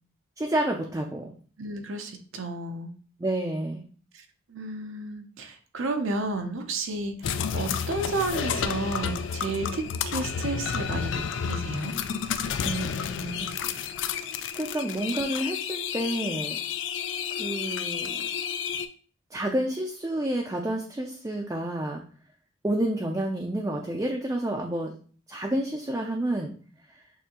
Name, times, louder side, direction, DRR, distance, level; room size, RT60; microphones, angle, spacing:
voice 1, 0.4-1.3 3.2-3.8 12.6-13.5 14.0-14.3 14.6-16.6 17.4-18.2 19.3-22.0 22.6-24.9 25.3-26.5, right 1 dB, 15° right, 0 dB, 0.4 m, -29 dB
voice 2, 1.6-2.9 4.1-11.9, right 2 dB, 75° right, 5 dB, 0.6 m, -32 dB
sound 1, 7.2-18.9, left 7 dB, 65° left, 0.3 m, -31 dB
6.5 x 2.7 x 2.9 m, 0.42 s
head